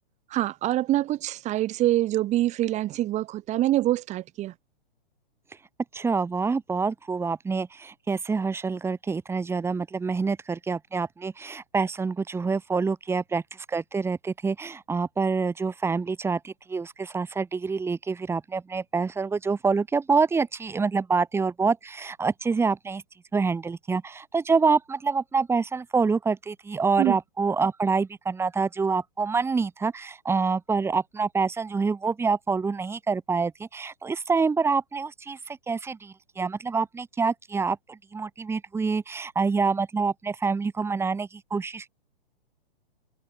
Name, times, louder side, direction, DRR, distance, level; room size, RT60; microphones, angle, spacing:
voice 1, 0.3-4.5 27.0-27.2, right 14 dB, 25° right, 4.0 m, -25 dB
voice 2, 5.9-13.4 13.7-23.0 23.3-41.9, right 4 dB, 10° right, 4.8 m, -26 dB
hypercardioid pair, 145°, 29 cm